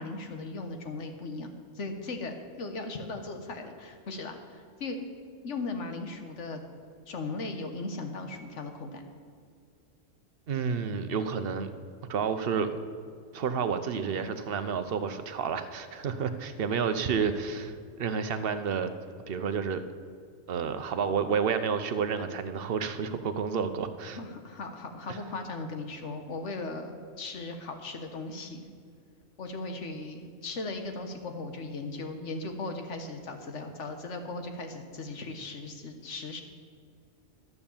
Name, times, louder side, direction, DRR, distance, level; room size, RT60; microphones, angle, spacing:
voice 1, 0.0-5.0 5.4-6.6 7.1-9.0 24.1-28.7 29.4-36.4, left 3 dB, 70° left, 5 dB, 1.5 m, -38 dB
voice 2, 10.5-11.7 12.1-12.7 13.3-18.9 19.3-19.8 20.5-24.2 25.1-25.2, right 6 dB, 55° right, 9 dB, 0.9 m, -30 dB
12.5 x 6.8 x 7.1 m, 2.2 s
omnidirectional pair, 1.3 m